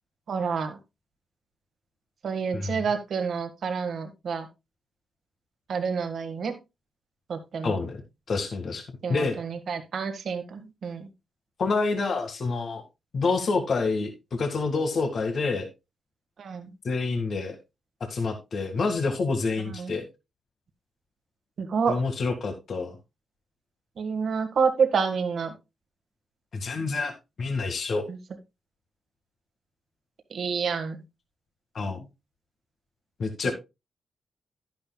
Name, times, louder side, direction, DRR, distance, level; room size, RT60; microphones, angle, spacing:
voice 1, 0.3-0.8 2.2-4.5 5.7-6.5 7.3-7.8 9.0-11.1 16.4-16.7 19.7-19.9 21.6-22.0 24.0-25.5 28.1-28.2 30.3-31.0 33.5-33.6, right 6 dB, 70° right, 7 dB, 1.8 m, -28 dB
voice 2, 7.6-8.0 8.3-8.8 9.1-9.4 11.6-12.8 13.1-15.7 16.8-17.6 18.1-20.0 21.9-23.0 26.5-28.0 31.7-32.0 33.2-33.5, left 4 dB, 65° left, 5 dB, 2.0 m, -27 dB
11.0 x 10.5 x 2.3 m, 0.24 s
supercardioid pair, 50°, 0 cm